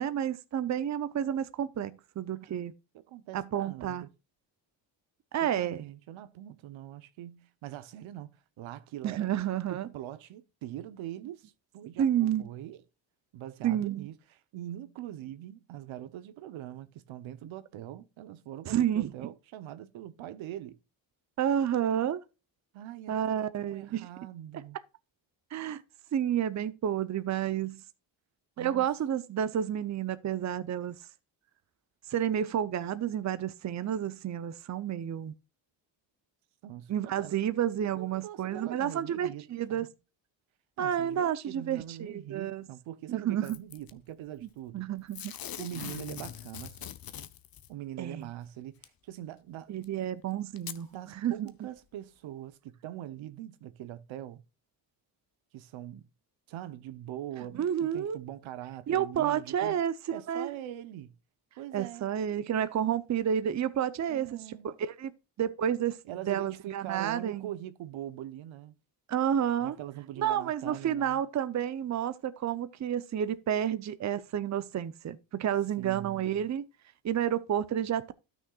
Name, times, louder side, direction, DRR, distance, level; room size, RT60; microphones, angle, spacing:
voice 1, 0.0-2.7 3.3-4.0 5.3-5.8 9.0-9.9 12.0-12.5 13.6-14.1 18.7-19.3 21.4-22.2 23.1-24.1 25.5-25.8 26.1-27.8 28.6-31.0 32.1-35.3 36.9-39.9 40.8-42.7 43.1-43.6 44.4-44.5 44.7-45.3 48.0-48.3 49.7-50.9 51.2-51.5 57.5-58.2 58.9-60.5 61.7-65.1 65.4-66.0 66.3-67.5 69.1-69.8 70.2-76.7 77.0-78.1, right 9 dB, 35° right, 0.7 m, -30 dB
voice 2, 3.1-4.1 5.4-8.3 8.6-9.3 9.7-12.8 13.3-20.8 22.7-24.8 28.6-28.9 36.6-37.4 37.9-39.9 40.8-44.8 45.6-46.9 47.7-49.7 50.9-54.4 55.5-56.1 56.5-59.8 60.1-61.1 61.6-62.1 64.1-64.7 66.0-68.7 69.6-71.2 75.8-76.4, right 12 dB, 80° right, 0.9 m, -43 dB
Packing tape duct tape / Tearing, 43.4-43.9 45.1-47.7 48.8-48.9 49.8-49.9 50.6-50.8 51.5-51.6, left 10 dB, 50° left, 0.8 m, -42 dB
13.0 x 6.3 x 2.4 m
cardioid pair, 105°, 46 cm